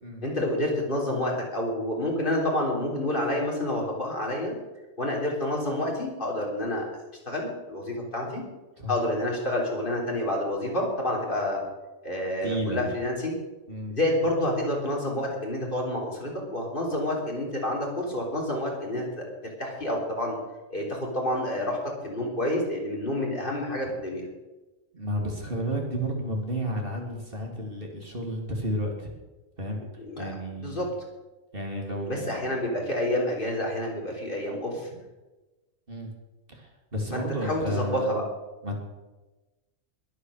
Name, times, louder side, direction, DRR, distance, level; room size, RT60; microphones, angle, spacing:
voice 1, 0.2-4.6 5.0-6.8 7.3-8.4 8.9-11.6 12.0-13.4 13.9-19.2 19.6-20.4 20.7-21.8 22.0-24.3 30.0-30.3 30.6-30.9 32.1-34.9 37.1-38.2, left 1 dB, 40° left, -2 dB, 3.7 m, -28 dB
voice 2, 12.4-12.8 13.7-14.0 24.9-29.1 29.6-29.8 30.2-30.9 31.5-32.6 35.9-36.1 36.5-38.2 38.6-38.8, equal, 40° right, 0 dB, 3.0 m, -32 dB
21.5 x 8.1 x 6.5 m, 1.1 s
omnidirectional pair, 1.4 m